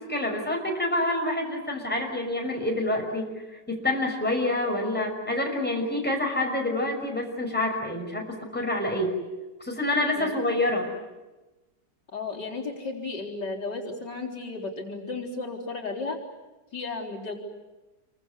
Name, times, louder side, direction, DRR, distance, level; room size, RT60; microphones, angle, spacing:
voice 1, 0.0-3.3 3.7-9.2 9.6-10.9, left 1 dB, 5° left, 1 dB, 5.7 m, -27 dB
voice 2, 12.1-16.2 16.7-17.3, left 3 dB, 70° left, -2 dB, 4.7 m, -34 dB
27.5 x 24.5 x 8.3 m, 1.1 s
omnidirectional pair, 1.9 m